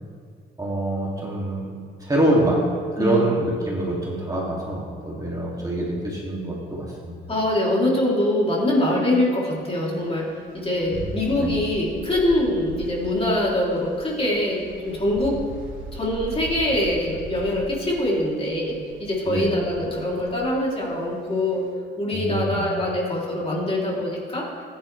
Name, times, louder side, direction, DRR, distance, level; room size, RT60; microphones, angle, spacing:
voice 1, 0.6-1.7 2.0-2.6 2.9-7.2 10.9-11.5 19.3-19.6 22.1-22.7, right 1 dB, 20° right, -4 dB, 2.6 m, -25 dB
voice 2, 3.0-3.3 7.3-10.3 10.5-15.4 15.9-21.6 22.0-24.4, left 1 dB, 30° left, -4 dB, 3.2 m, -23 dB
sound 1, 9.9-21.7, right 3 dB, 85° right, 1.2 m, -40 dB
14.5 x 9.7 x 3.4 m, 2.1 s
cardioid pair, 90°, 20 cm